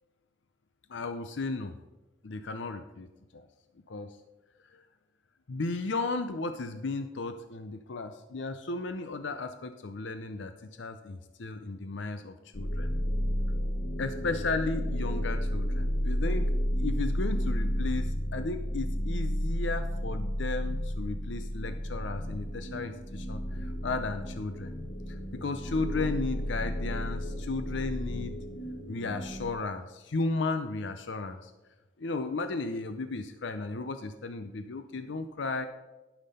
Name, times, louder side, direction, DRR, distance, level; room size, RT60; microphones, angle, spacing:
voice 1, 0.9-1.7 2.2-3.1 3.3-3.4 3.9-4.2 4.7-4.8 5.5-12.9 14.0-16.5 16.8-24.7 25.1-28.3 28.9-31.5 32.0-35.7, left 3 dB, 70° left, 8 dB, 0.6 m, -34 dB
sound 1, 12.5-29.5, equal, 45° left, 1.1 m, -32 dB
12.0 x 6.0 x 5.4 m, 1.1 s
head